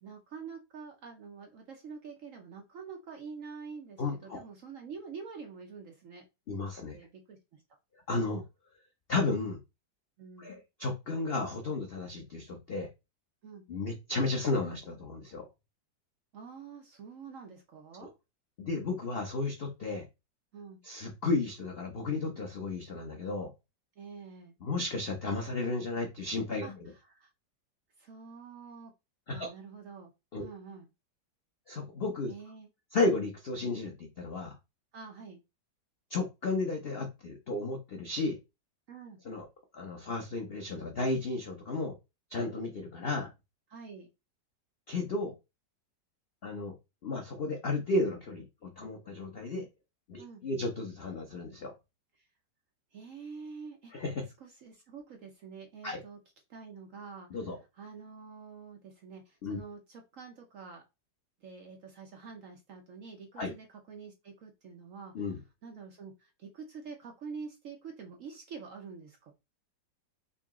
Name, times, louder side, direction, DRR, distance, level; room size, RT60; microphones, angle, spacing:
voice 1, 0.0-6.2 6.9-7.6 10.2-10.5 13.4-13.7 16.3-18.1 20.5-20.8 24.0-24.5 26.6-27.3 28.0-28.9 29.3-30.1 30.4-30.9 32.3-32.7 34.9-35.4 38.9-39.2 43.7-44.1 50.2-50.4 52.2-52.3 52.9-54.0 54.4-56.2 56.5-57.3 57.8-60.8 61.4-69.3, right 5 dB, 60° right, 3 dB, 0.9 m, -47 dB
voice 2, 4.0-4.4 6.5-7.0 8.1-8.4 9.1-9.6 10.4-12.9 13.7-15.5 18.6-20.1 20.8-23.5 24.6-26.7 29.3-29.5 30.3-30.5 31.7-32.3 32.9-34.6 36.1-38.4 39.2-39.5 39.7-41.9 42.3-43.3 44.9-45.3 46.4-46.7 47.0-49.7 50.1-51.7 53.9-54.2 55.8-56.0 57.3-57.6 59.4-59.6 63.4-63.5 65.1-65.4, left 3 dB, 70° left, 2 dB, 0.5 m, -33 dB
3.8 x 2.8 x 3.5 m, 0.25 s
omnidirectional pair, 2.0 m